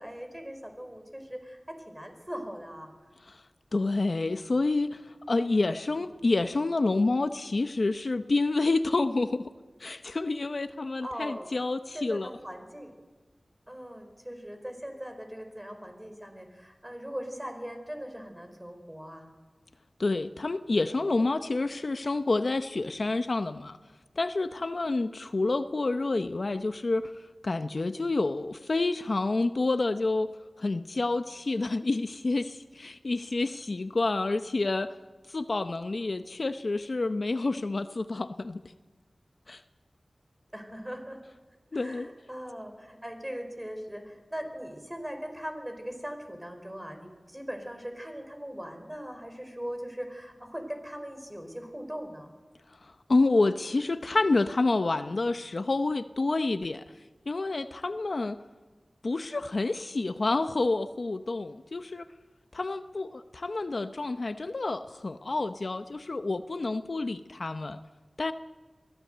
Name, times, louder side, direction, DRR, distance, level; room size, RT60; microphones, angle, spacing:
voice 1, 0.0-1.6 1.9-2.9 11.0-11.5 11.9-12.9 13.7-19.3 40.5-41.2 41.7-52.3, equal, 15° right, 6 dB, 4.7 m, -40 dB
voice 2, 3.7-9.5 9.8-12.3 20.0-23.8 24.2-30.3 30.6-34.9 35.3-38.7 39.5-39.6 41.7-42.1 52.8-56.8 57.3-58.4 59.0-62.1 62.5-67.8 68.2-68.3, left 3 dB, 65° left, 10 dB, 0.7 m, -28 dB
23.0 x 15.5 x 7.9 m, 1.4 s
wide cardioid pair, 50°, 0 cm